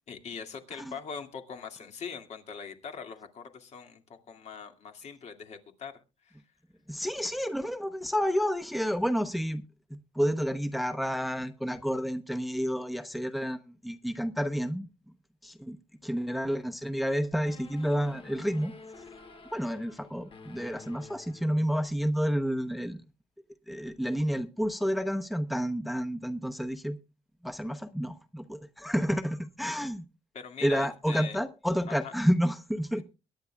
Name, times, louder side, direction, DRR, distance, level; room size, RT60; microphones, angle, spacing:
voice 1, 0.1-5.9 6.2-6.4 30.3-31.4 31.9-32.1, left 6 dB, 60° left, 5 dB, 2.2 m, -42 dB
voice 2, 6.9-9.6 9.9-14.9 15.4-15.8 16.0-19.0 19.5-23.0 23.7-27.0 27.4-30.0 30.6-33.0, equal, ahead, 8 dB, 0.8 m, -30 dB
sound 1, 17.4-22.1, left 4 dB, 45° left, 1.6 m, -50 dB
22.5 x 10.0 x 2.3 m, 0.31 s
cardioid pair, 95°, 13 cm